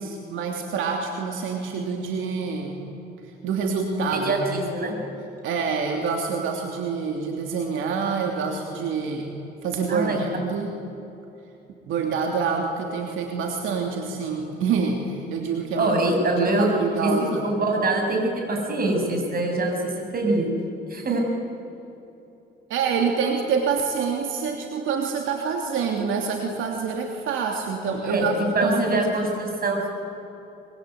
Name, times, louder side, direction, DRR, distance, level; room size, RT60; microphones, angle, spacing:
voice 1, 0.0-2.7 3.2-4.6 5.4-9.3 9.6-10.7 11.9-16.0 16.4-17.4 22.7-28.3 28.6-29.0, right 5 dB, 85° right, 2 dB, 3.0 m, -26 dB
voice 2, 4.1-5.0 9.9-10.3 15.7-16.7 17.0-20.5 20.9-21.3 28.0-29.9, right 2 dB, 50° right, 2 dB, 7.9 m, -24 dB
25.0 x 24.0 x 9.4 m, 3.0 s
cardioid pair, 90°, 20 cm